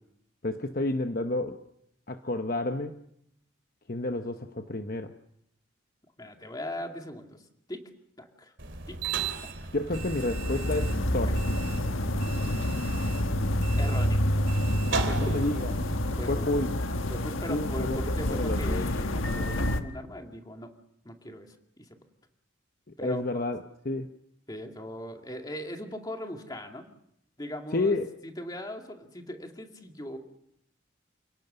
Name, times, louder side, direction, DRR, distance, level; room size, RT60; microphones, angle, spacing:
voice 1, 0.4-1.6 2.1-3.0 3.9-5.1 9.7-11.4 15.2-15.7 16.3-16.7 17.5-18.9 23.0-24.1 27.7-28.1, left 2 dB, 45° left, 7 dB, 1.0 m, -30 dB
voice 2, 6.2-7.4 7.7-7.8 8.2-8.5 8.9-9.0 9.6-9.7 13.8-14.2 15.0-15.4 16.2-16.5 17.1-20.7 21.0-22.0 23.0-23.5 24.5-26.8 27.4-27.9 28.2-30.2, left 1 dB, 20° left, 3 dB, 2.3 m, -39 dB
sound 1, 8.6-16.3, right 5 dB, 65° right, 3.1 m, -37 dB
sound 2, 9.9-19.8, left 1 dB, 85° left, 1.4 m, -28 dB
28.5 x 18.0 x 6.8 m, 0.75 s
head